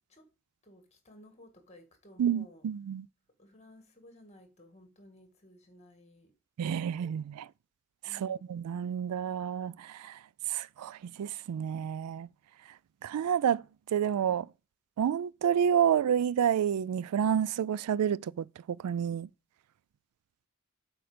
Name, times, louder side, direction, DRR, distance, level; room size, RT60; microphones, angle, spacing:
voice 1, 0.6-2.7 3.4-7.0 8.0-8.5, left 1 dB, 30° left, 1.7 m, -56 dB
voice 2, 2.2-3.1 6.6-7.5 8.0-10.2 10.5-12.3 13.0-13.6 13.9-14.5 15.0-19.3, right 8 dB, 90° right, 0.3 m, -29 dB
7.8 x 4.6 x 5.0 m
head